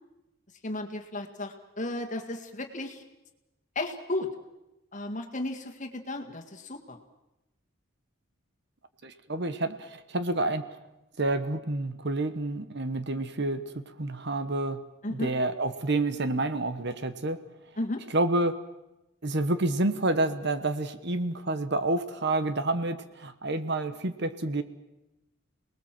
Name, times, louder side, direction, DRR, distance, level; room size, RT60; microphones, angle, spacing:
voice 1, 0.6-3.0 3.8-4.3 4.9-7.0 15.0-15.3 17.8-18.0, left 2 dB, 35° left, 4 dB, 1.9 m, -34 dB
voice 2, 9.0-10.7 11.2-14.8 15.1-17.4 18.1-18.6 19.2-24.6, right 2 dB, 50° right, 11 dB, 1.1 m, -29 dB
28.5 x 20.0 x 7.6 m, 0.97 s
head